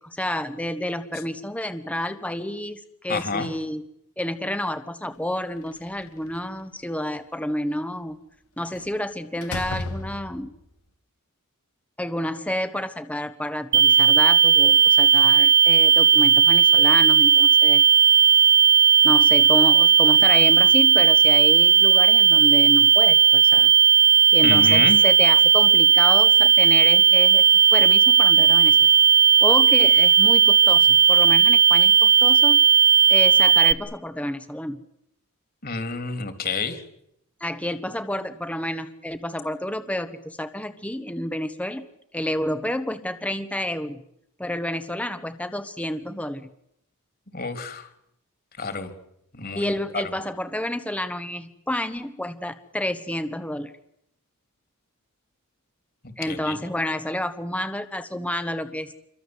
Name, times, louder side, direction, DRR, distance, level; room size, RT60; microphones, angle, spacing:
voice 1, 0.0-3.8 4.2-8.2 8.6-10.5 12.0-17.8 19.0-23.7 24.3-27.4 27.7-28.9 29.4-32.7 33.1-34.8 37.4-41.8 42.1-44.0 44.4-46.5 49.5-53.7 56.2-58.9, left 1 dB, 5° left, 10 dB, 1.2 m, -29 dB
voice 2, 3.1-3.5 24.4-25.0 35.6-36.8 47.3-47.9 48.6-48.9 49.3-49.7 56.3-56.6, left 4 dB, 45° left, 9 dB, 3.4 m, -29 dB
Slam, 5.6-6.6 8.7-9.0 9.4-10.6, left 2 dB, 80° left, 2.6 m, -35 dB
sound 1, 13.7-33.7, right 7 dB, 45° right, 1.1 m, -15 dB
27.5 x 23.0 x 8.0 m, 0.75 s
head